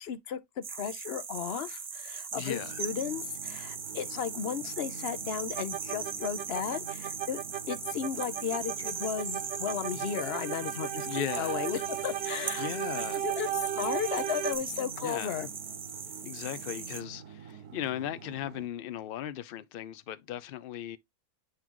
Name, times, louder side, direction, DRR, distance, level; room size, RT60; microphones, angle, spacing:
voice 1, 0.0-7.4 7.7-12.7 13.2-15.5, left 8 dB, 55° left, 0.8 m, -35 dB
sound 1, 0.6-17.0, right 6 dB, 40° right, 1.0 m, -39 dB
voice 2, 2.3-2.8 11.0-11.7 12.6-13.2 15.0-15.4 16.2-21.0, left 11 dB, 85° left, 0.5 m, -37 dB
sound 2, 2.6-18.7, right 7 dB, 90° right, 1.1 m, -48 dB
sound 3, 5.5-14.6, right 12 dB, 70° right, 0.6 m, -36 dB
8.5 x 3.8 x 3.0 m
omnidirectional pair, 1.5 m